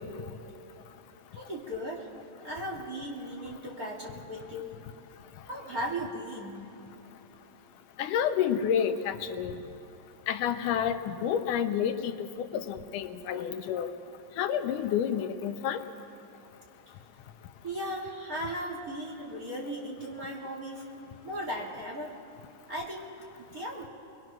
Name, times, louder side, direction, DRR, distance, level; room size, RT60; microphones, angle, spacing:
voice 1, 1.3-2.1 2.4-4.8 5.5-6.6 17.6-20.8 21.2-22.1 22.7-23.9, equal, 30° right, -3 dB, 2.3 m, -37 dB
voice 2, 8.0-9.5 10.3-13.9 14.4-15.8, left 8 dB, 80° left, 8 dB, 2.4 m, -29 dB
26.5 x 22.0 x 6.1 m, 2.8 s
omnidirectional pair, 3.6 m